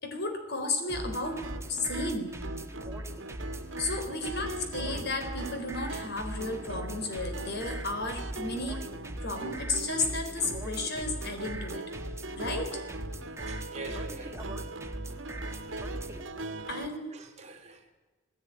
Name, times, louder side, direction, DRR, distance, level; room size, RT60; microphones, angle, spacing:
voice 1, 0.0-2.3 3.8-8.9 9.2-11.8 12.4-12.7 16.7-17.1, left 2 dB, 60° left, 4.2 m, -33 dB
sound 1, 0.9-16.2, right 1 dB, 15° right, 1.6 m, -40 dB
sound 2, 1.0-16.9, right 2 dB, 85° right, 1.4 m, -41 dB
voice 2, 13.5-14.5 15.5-15.6 17.1-17.9, right 2 dB, 35° right, 3.4 m, -45 dB
19.0 x 16.5 x 9.9 m
head